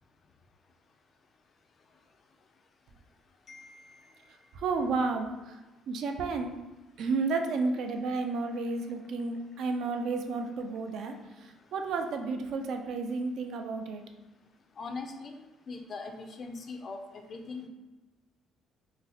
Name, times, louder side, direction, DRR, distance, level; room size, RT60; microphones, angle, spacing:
voice 1, 3.5-4.6 14.8-15.4 15.7-17.7, left 3 dB, 40° left, 5 dB, 0.3 m, -42 dB
voice 2, 4.6-5.3 5.9-6.5 7.0-11.1 11.7-14.0, right 4 dB, 65° right, 5 dB, 0.3 m, -31 dB
3.9 x 2.0 x 2.7 m, 1.1 s
cardioid pair, 135°, 0 cm